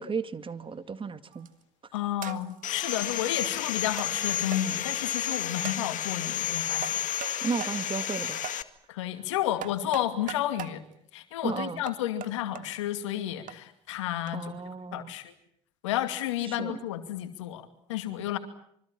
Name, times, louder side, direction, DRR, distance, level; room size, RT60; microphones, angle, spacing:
voice 1, 0.0-1.5 7.4-8.4 11.4-11.8 14.3-15.1 16.5-16.8, right 5 dB, 35° right, 12 dB, 2.0 m, -34 dB
sound 1, 1.3-1.6 2.2-2.6 3.4-3.5 4.0-4.1 4.5-4.6 5.6-5.9 6.8-7.3 7.6-7.8 8.4-8.6 9.6-10.8 11.9-12.6 13.5-13.6 14.3-14.4, right 11 dB, 60° right, 1.7 m, -40 dB
voice 2, 1.9-7.0 8.9-10.8 11.1-14.5 14.9-15.3 15.8-18.4, left 12 dB, 85° left, 9 dB, 2.4 m, -31 dB
Sawing, 2.6-8.6, left 10 dB, 55° left, 1.8 m, -31 dB
26.5 x 24.5 x 7.4 m, 0.71 s
hypercardioid pair, 55°, 15 cm